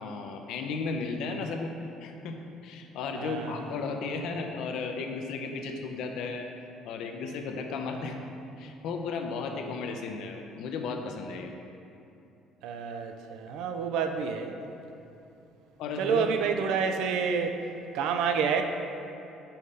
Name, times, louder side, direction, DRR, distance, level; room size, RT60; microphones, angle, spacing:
voice 1, 0.0-1.7 2.0-2.4 2.6-6.5 6.8-8.2 8.6-11.5 15.8-16.3, left 4 dB, 70° left, 4 dB, 0.6 m, -34 dB
voice 2, 3.1-3.6 12.6-14.5 16.0-17.6 17.9-18.6, right 6 dB, 75° right, 6 dB, 0.4 m, -28 dB
5.6 x 3.3 x 5.3 m, 2.8 s
cardioid pair, 125°, 0 cm